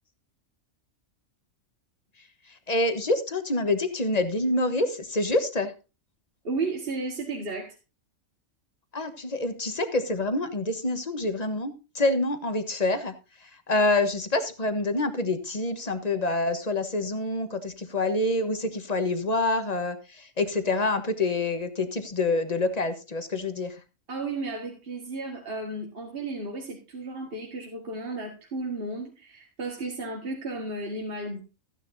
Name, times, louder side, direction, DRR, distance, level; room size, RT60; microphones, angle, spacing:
voice 1, 2.5-5.7 8.9-13.1 13.4-23.8, left 2 dB, 30° left, 9 dB, 1.2 m, -27 dB
voice 2, 6.4-7.8 24.1-31.4, right 3 dB, 45° right, 0 dB, 1.9 m, -33 dB
14.5 x 9.8 x 2.7 m, 0.30 s
omnidirectional pair, 1.4 m